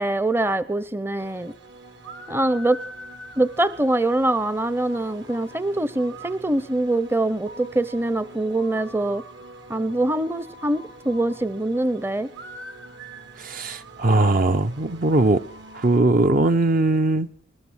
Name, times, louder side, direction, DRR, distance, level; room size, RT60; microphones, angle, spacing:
voice 1, 0.0-1.5 2.3-2.8 3.4-9.2 9.7-12.3, right 2 dB, 10° right, 0.7 m, -23 dB
sound 1, 1.2-16.0, right 2 dB, 75° right, 3.0 m, -43 dB
voice 2, 13.4-15.4 15.7-17.3, right 2 dB, 45° right, 0.8 m, -20 dB
20.5 x 20.5 x 6.4 m
head